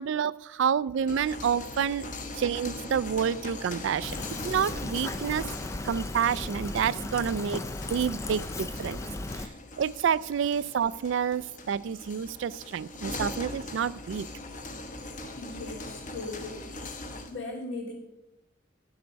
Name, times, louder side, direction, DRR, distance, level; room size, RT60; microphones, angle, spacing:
voice 1, 0.0-2.1 2.3-5.5 5.8-7.6 7.9-9.0 9.3-9.5 9.8-14.3, right 7 dB, 65° right, 20 dB, 0.3 m, -28 dB
sound 1, 0.9-17.4, left 2 dB, 40° left, 0.9 m, -41 dB
Fill (with liquid), 4.0-9.5, left 2 dB, 15° left, 0.3 m, -36 dB
voice 2, 15.4-16.9 17.3-17.9, left 2 dB, 70° left, 0 dB, 2.7 m, -38 dB
10.0 x 7.9 x 5.1 m, 0.89 s
head